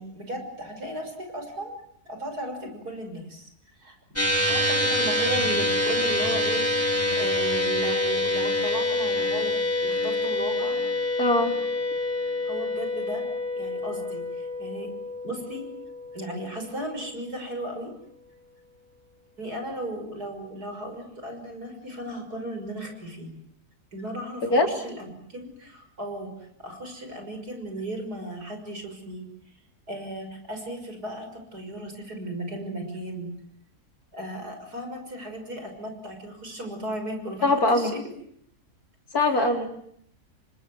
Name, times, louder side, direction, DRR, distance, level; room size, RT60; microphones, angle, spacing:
voice 1, 0.0-1.8 2.1-3.5 3.8-4.0 4.5-10.8 12.4-13.2 13.5-14.9 15.2-15.6 16.1-17.9 19.4-23.3 23.9-26.3 26.6-29.2 29.9-33.3 34.1-38.0 39.1-39.6, right 1 dB, 85° right, 5 dB, 6.6 m, -35 dB
sound 1, 4.2-16.7, left 2 dB, 10° left, 3.7 m, -26 dB
voice 2, 11.2-11.5 24.5-24.7 37.4-37.9 39.1-39.7, left 2 dB, 70° left, 4 dB, 4.2 m, -21 dB
30.0 x 24.5 x 7.8 m, 0.69 s
omnidirectional pair, 1.6 m